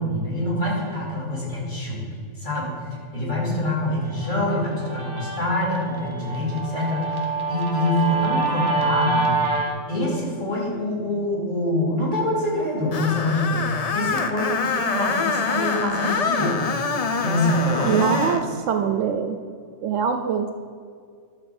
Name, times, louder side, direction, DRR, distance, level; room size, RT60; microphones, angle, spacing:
voice 1, 0.0-2.0 2.3-9.3 9.9-16.6 17.2-18.0, left 1 dB, 35° left, -7 dB, 3.1 m, -25 dB
Guitar, 4.2-9.7, right 3 dB, 25° right, 1.2 m, -27 dB
Screech, 12.9-18.4, left 5 dB, 60° left, 0.4 m, -25 dB
voice 2, 17.8-19.4 19.8-20.5, right 7 dB, 70° right, 7 dB, 0.9 m, -23 dB
11.5 x 4.4 x 7.0 m, 2.2 s
omnidirectional pair, 1.4 m